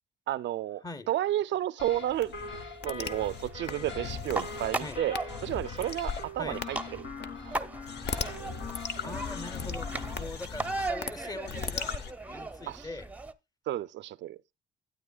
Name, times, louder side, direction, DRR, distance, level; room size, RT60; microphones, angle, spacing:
voice 1, 0.3-2.3 2.8-6.8 7.2-7.5 8.4-8.5 12.7-12.9 13.7-14.4, right 13 dB, 65° right, 0.4 m, -32 dB
sound 1, 1.8-10.2, left 4 dB, 80° left, 1.7 m, -42 dB
sound 2, 1.8-13.3, right 2 dB, 5° right, 0.6 m, -39 dB
sound 3, 2.2-6.3 6.6-6.7 7.2-7.3 7.9-11.1 11.4-12.1, left 6 dB, 60° left, 0.9 m, -38 dB
voice 2, 9.0-9.9 10.2-12.0 12.3-13.1, left 2 dB, 20° left, 0.8 m, -41 dB
12.0 x 9.1 x 2.3 m
cardioid pair, 90°, 20 cm